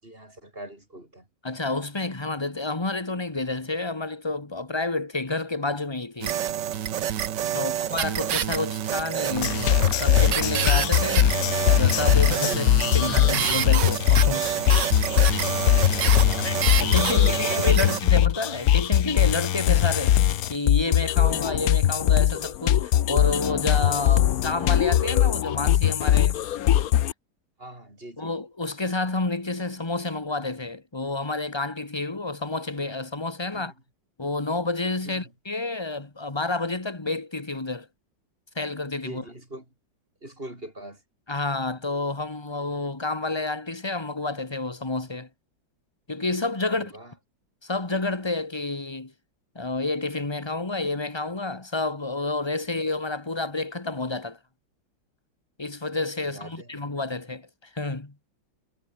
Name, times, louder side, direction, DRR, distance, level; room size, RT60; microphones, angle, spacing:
voice 1, 0.0-1.3 7.5-7.8 12.5-12.6 16.0-16.6 17.1-18.1 27.6-28.3 33.5-33.7 35.0-35.3 39.0-39.7 40.2-41.0 46.6-47.1 56.2-56.8, right 1 dB, 25° right, 6.8 m, -42 dB
voice 2, 1.4-6.4 7.5-12.7 12.9-14.5 16.4-20.2 20.5-26.4 28.2-33.7 34.2-37.9 38.5-39.2 41.3-45.3 46.1-46.9 47.6-49.1 49.5-54.4 55.6-58.1, left 3 dB, 15° left, 1.7 m, -29 dB
sound 1, 6.2-18.0, right 10 dB, 65° right, 1.6 m, -27 dB
sound 2, 9.3-27.1, left 11 dB, 60° left, 1.0 m, -21 dB
omnidirectional pair, 2.1 m